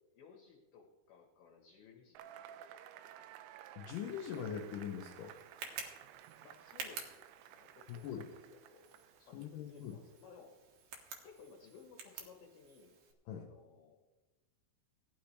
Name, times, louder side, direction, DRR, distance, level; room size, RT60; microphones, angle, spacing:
voice 1, 0.1-2.7 6.4-7.0 7.4-8.2 8.5-8.9 9.3-10.6 11.2-13.0 13.2-14.0, left 5 dB, 65° left, 0 dB, 2.7 m, -59 dB
Cheering / Applause / Crowd, 2.2-9.4, right 11 dB, 85° right, 2.9 m, -55 dB
voice 2, 3.8-5.4 7.9-8.3 9.2-10.0 13.3-13.5, left 8 dB, 85° left, 1 dB, 1.9 m, -42 dB
Tick, 3.9-13.1, right 5 dB, 65° right, 2.9 m, -51 dB
18.0 x 10.0 x 3.2 m, 1.1 s
omnidirectional pair, 5.1 m